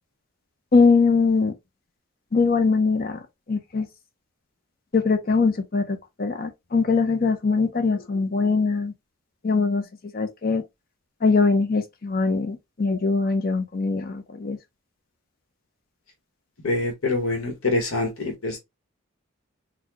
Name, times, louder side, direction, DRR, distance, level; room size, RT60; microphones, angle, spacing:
voice 1, 0.7-1.5 2.3-3.2 3.5-3.9 4.9-8.9 9.4-9.8 10.1-10.6 11.2-14.6, left 4 dB, 45° left, 0.6 m, -22 dB
voice 2, 16.6-18.6, left 2 dB, 75° left, 1.2 m, -25 dB
4.1 x 2.2 x 2.9 m
head